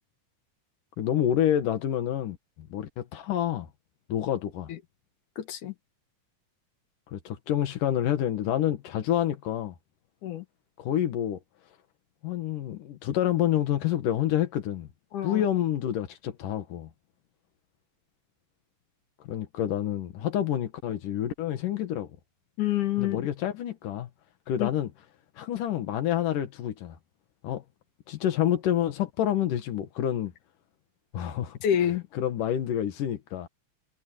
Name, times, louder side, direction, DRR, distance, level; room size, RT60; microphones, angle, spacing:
voice 1, 1.0-3.7 4.1-4.7 7.1-9.7 10.8-11.4 12.2-14.9 15.2-16.9 19.3-22.1 23.0-24.1 24.5-24.9 25.4-27.0 27.4-27.6 28.1-30.3 31.1-31.6 32.1-33.5, left 11 dB, 90° left, 3.2 m, -28 dB
voice 2, 5.4-5.7 10.2-10.4 15.1-15.4 22.6-23.3 24.6-24.7 31.6-32.0, left 11 dB, 75° left, 3.3 m, -27 dB
omnidirectional pair, 3.6 m